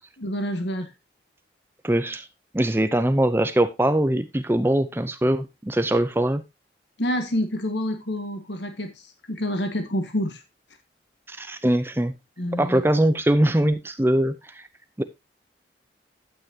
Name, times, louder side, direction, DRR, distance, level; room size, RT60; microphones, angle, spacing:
voice 1, 0.2-0.9 7.0-10.4 12.4-12.8, equal, 75° left, 1.7 m, -28 dB
voice 2, 1.8-2.3 2.5-6.4 11.3-12.1 12.6-14.7 15.0-15.1, right 1 dB, 10° right, 0.6 m, -22 dB
12.0 x 8.9 x 2.8 m
head